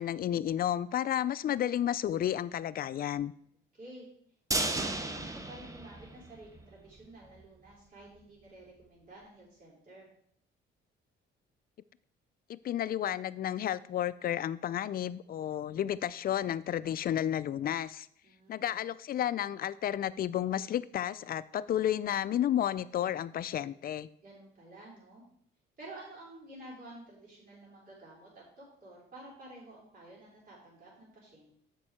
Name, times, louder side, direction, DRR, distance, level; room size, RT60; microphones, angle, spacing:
voice 1, 0.0-3.3 12.5-18.1 18.5-24.1, left 11 dB, 50° left, 16 dB, 0.4 m, -32 dB
voice 2, 3.5-4.1 4.6-10.1 18.2-18.8 24.2-25.2 25.8-31.6, right 2 dB, 45° right, -5 dB, 3.8 m, -51 dB
sound 1, 4.5-6.7 7.0-7.1 7.4-7.5, right 2 dB, 15° right, 0.8 m, -34 dB
7.2 x 5.4 x 4.9 m, 0.66 s
cardioid pair, 90°, 20 cm